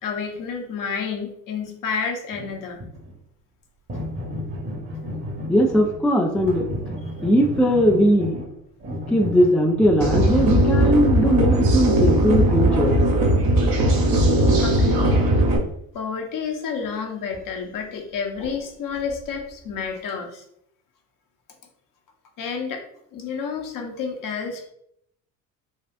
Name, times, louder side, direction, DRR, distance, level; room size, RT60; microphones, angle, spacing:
voice 1, 0.0-2.8 14.0-14.2 14.6-15.2 15.9-20.4 22.4-22.8 23.1-24.7, left 6 dB, 50° left, 2 dB, 1.0 m, -30 dB
sound 1, 2.3-3.2 3.9-6.1 6.3-10.6 16.8-16.9 17.3-17.5 17.8-17.9 18.4-18.5 18.9-19.9, left 1 dB, 30° right, 1.2 m, -33 dB
voice 2, 5.5-6.7 7.2-8.4 9.1-13.0, equal, ahead, 1 dB, 0.4 m, -19 dB
sound 2, 10.0-15.6, right 1 dB, 55° right, 1.0 m, -18 dB
4.3 x 2.4 x 2.5 m, 0.72 s
hypercardioid pair, 60°, 43 cm